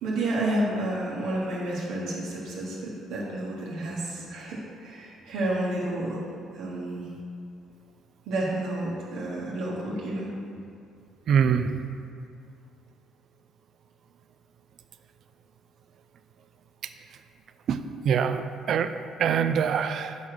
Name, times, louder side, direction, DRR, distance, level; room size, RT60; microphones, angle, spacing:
voice 1, 0.0-6.2 6.5-7.1 8.3-10.3 11.4-11.5, right 1 dB, 80° right, -6 dB, 1.2 m, -30 dB
voice 2, 11.3-11.7 17.7-17.8 18.0-18.9 19.2-20.2, right 7 dB, 55° right, 10 dB, 0.4 m, -24 dB
5.4 x 4.9 x 6.2 m, 2.4 s
cardioid pair, 110°, 0 cm